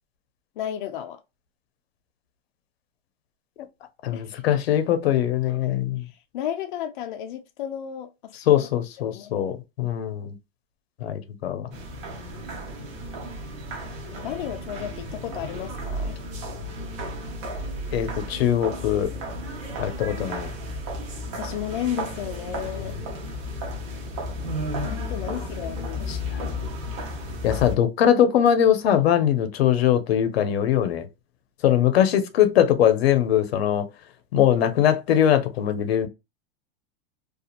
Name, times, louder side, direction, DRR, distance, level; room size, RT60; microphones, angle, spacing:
voice 1, 0.6-1.2 4.1-4.4 6.0-8.7 9.0-9.5 12.1-12.9 14.1-16.2 21.4-23.0 24.8-26.8, left 10 dB, 55° left, 0.4 m, -34 dB
voice 2, 4.0-6.0 8.5-10.4 11.0-11.7 17.9-19.1 19.8-20.5 22.8-22.9 26.1-26.4 27.4-31.1 31.6-33.8 34.3-36.1, left 10 dB, 90° left, 0.7 m, -21 dB
sound 1, 11.7-27.8, equal, 35° right, 0.7 m, -33 dB
2.8 x 2.4 x 2.4 m
supercardioid pair, 180°, 30 cm